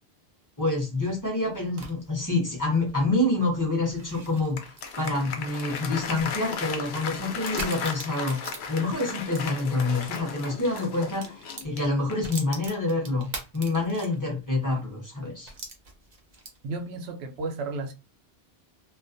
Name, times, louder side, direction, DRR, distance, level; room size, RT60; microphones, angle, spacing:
voice 1, 0.6-4.7 5.0-8.4 8.7-15.5, left 2 dB, 20° left, 0.8 m, -27 dB
sound 1, 1.2-10.2 10.6-14.5 14.8-14.9 15.5-16.8, right 3 dB, 50° right, 0.7 m, -43 dB
Applause, 4.3-12.4, left 6 dB, 85° left, 0.8 m, -36 dB
voice 2, 16.6-17.9, right 3 dB, 85° right, 0.8 m, -33 dB
2.4 x 2.1 x 2.5 m
omnidirectional pair, 1.0 m